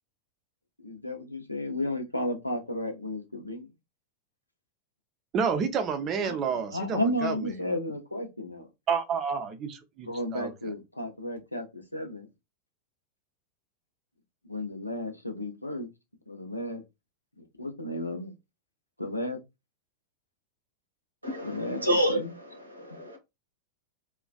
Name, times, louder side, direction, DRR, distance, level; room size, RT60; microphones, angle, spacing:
voice 1, 0.8-3.7 6.2-6.4 6.7-8.7 10.1-12.3 14.5-15.9 16.3-16.8 17.4-18.3 19.0-19.4 21.4-21.8 22.1-22.3, left 1 dB, 85° left, 0.5 m, -33 dB
voice 2, 5.3-7.4 8.9-10.5, right 6 dB, 30° right, 0.5 m, -29 dB
voice 3, 21.2-22.2 22.7-23.2, equal, 85° right, 0.7 m, -28 dB
2.4 x 2.1 x 2.4 m
figure-of-eight pair, 90°, 0 cm